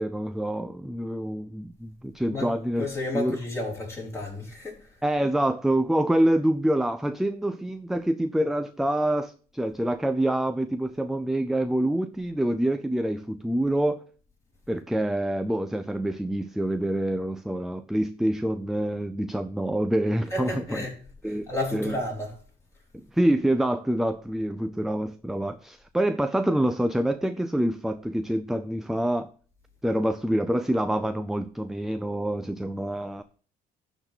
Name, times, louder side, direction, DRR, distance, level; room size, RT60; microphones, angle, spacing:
voice 1, 0.0-2.9 3.1-3.4 5.0-14.0 14.7-20.8 21.2-21.9 22.9-29.3 29.8-33.2, right 1 dB, ahead, 0.5 m, -26 dB
voice 2, 2.8-4.9 20.3-20.9 21.2-22.3, left 2 dB, 15° left, 4.6 m, -32 dB
12.0 x 4.1 x 6.8 m
cardioid pair, 110°, 17 cm